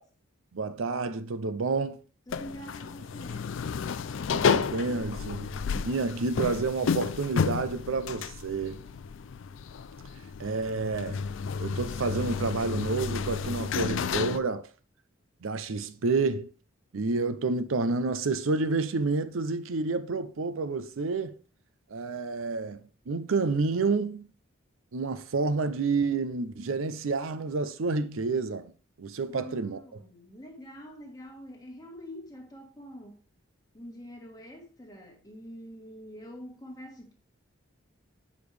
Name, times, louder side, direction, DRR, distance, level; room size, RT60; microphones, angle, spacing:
voice 1, 0.5-2.0 4.3-8.8 10.4-11.2 11.6-14.7 15.4-16.5 16.9-21.4 21.9-24.3 24.9-28.7 29.0-29.8, right 3 dB, 85° right, 0.6 m, -29 dB
sound 1, 2.3-14.4, left 6 dB, 70° left, 0.4 m, -31 dB
voice 2, 2.3-3.6 8.8-8.9 29.3-33.2 33.7-37.1, equal, 20° left, 1.4 m, -45 dB
8.0 x 5.2 x 3.3 m
head